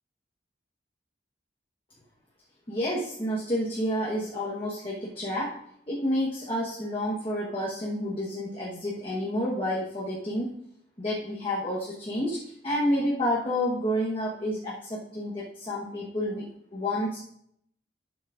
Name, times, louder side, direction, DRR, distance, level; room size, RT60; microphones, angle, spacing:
voice 1, 2.7-5.5 5.9-10.5 11.0-16.5 16.7-17.2, equal, 30° left, -5 dB, 1.2 m, -29 dB
12.0 x 7.2 x 2.5 m, 0.71 s
head